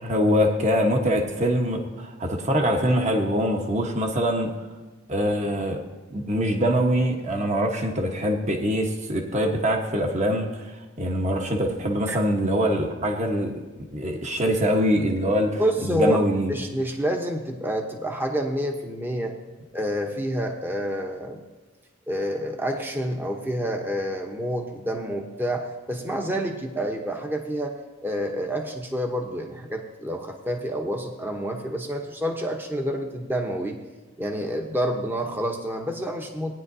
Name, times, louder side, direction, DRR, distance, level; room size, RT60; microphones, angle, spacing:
voice 1, 0.0-4.5 5.1-5.8 6.1-16.5, equal, 35° right, 2 dB, 1.2 m, -24 dB
voice 2, 15.6-16.2 16.5-19.3 19.7-21.4 22.1-27.8 28.0-33.8 34.2-36.5, equal, 10° right, 3 dB, 0.8 m, -28 dB
18.5 x 9.9 x 2.7 m, 1.3 s
head